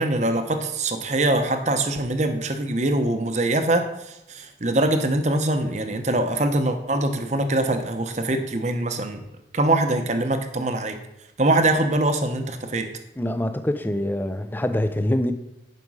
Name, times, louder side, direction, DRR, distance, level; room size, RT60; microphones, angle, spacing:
voice 1, 0.0-9.2 9.5-11.0 11.4-12.9, right 2 dB, 40° right, 7 dB, 0.8 m, -23 dB
voice 2, 13.2-15.3, left 1 dB, 10° left, 9 dB, 0.4 m, -24 dB
11.0 x 5.2 x 4.8 m, 0.89 s
head